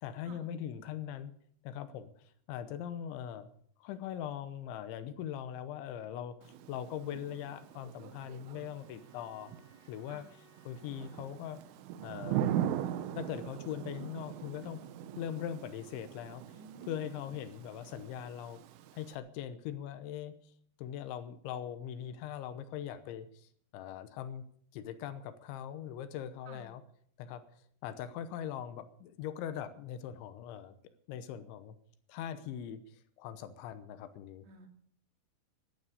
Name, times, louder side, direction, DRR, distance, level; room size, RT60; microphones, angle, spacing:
voice 1, 0.0-1.3 1.6-3.5 3.8-9.5 9.9-10.3 10.7-11.6 12.0-12.4 13.1-14.8 15.2-18.6 18.9-20.5 20.8-24.4 24.7-26.8 27.2-30.7 31.1-31.8 32.1-34.5, left 10 dB, 80° left, 11 dB, 3.1 m, -41 dB
Thunder / Rain, 6.4-19.2, right 10 dB, 85° right, 3.3 m, -40 dB
Bowed string instrument, 7.2-11.7, right 1 dB, ahead, 4.7 m, -67 dB
voice 2, 16.5-17.3 26.5-26.6 34.4-34.7, right 5 dB, 60° right, 4 dB, 4.1 m, -52 dB
14.5 x 12.0 x 6.7 m, 0.63 s
omnidirectional pair, 5.7 m